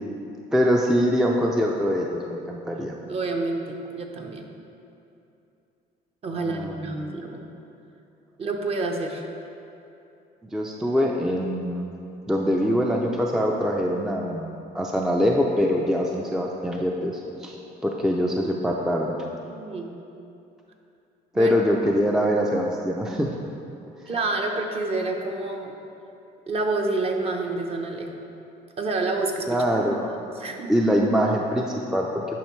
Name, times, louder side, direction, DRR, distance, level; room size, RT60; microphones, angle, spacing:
voice 1, 0.5-3.0 6.3-7.1 10.5-11.9 12.3-17.6 17.8-19.1 21.3-23.3 29.5-30.2 30.7-32.4, equal, 5° right, 0 dB, 0.4 m, -24 dB
voice 2, 2.7-4.4 6.2-7.5 8.4-9.3 18.3-18.6 19.5-20.0 21.3-21.5 24.1-25.7 26.5-28.3 28.8-29.6 30.4-30.7, right 2 dB, 35° right, 2 dB, 0.9 m, -28 dB
10.5 x 5.2 x 3.1 m, 2.7 s
cardioid pair, 110°, 17 cm